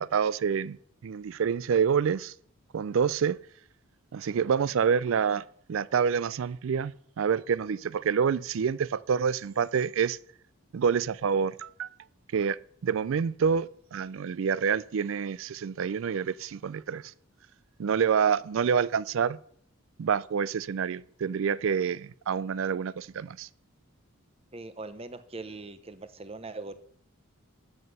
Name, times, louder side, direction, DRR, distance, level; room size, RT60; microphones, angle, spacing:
voice 1, 0.0-2.3 2.7-3.4 4.1-5.4 5.7-10.2 10.7-11.9 12.3-12.6 12.8-17.1 17.8-19.4 20.0-23.5, right 6 dB, 65° right, 0.3 m, -27 dB
voice 2, 24.5-26.7, right 3 dB, 25° right, 0.7 m, -41 dB
13.0 x 7.9 x 5.5 m
head